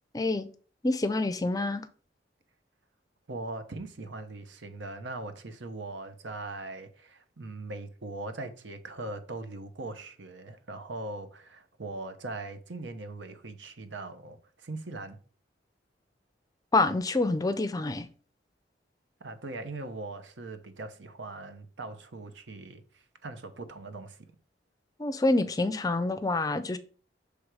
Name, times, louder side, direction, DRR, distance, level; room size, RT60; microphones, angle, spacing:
voice 1, 0.1-0.5 0.8-1.9 16.7-18.1 25.0-26.8, left 2 dB, 20° left, 0.4 m, -27 dB
voice 2, 3.3-15.2 19.2-24.3, right 2 dB, 85° right, 0.9 m, -40 dB
6.4 x 3.4 x 4.8 m
head